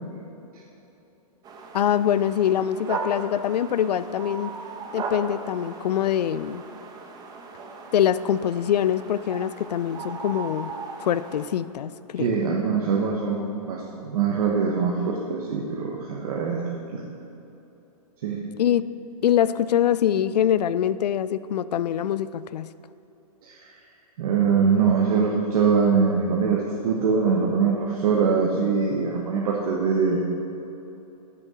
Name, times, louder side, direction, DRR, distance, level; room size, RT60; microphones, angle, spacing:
sound 1, 1.4-11.5, right 4 dB, 20° right, 0.9 m, -37 dB
voice 1, 1.7-4.5 4.9-6.6 7.9-10.7 11.0-12.4 18.6-18.8 19.2-22.7, left 10 dB, 85° left, 16 dB, 0.4 m, -24 dB
voice 2, 12.2-16.6 16.9-17.1 18.2-18.5 23.4-23.6 24.2-30.2, right 5 dB, 65° right, -2 dB, 1.2 m, -23 dB
8.2 x 6.9 x 6.2 m, 3.0 s
hypercardioid pair, 130°, 20 cm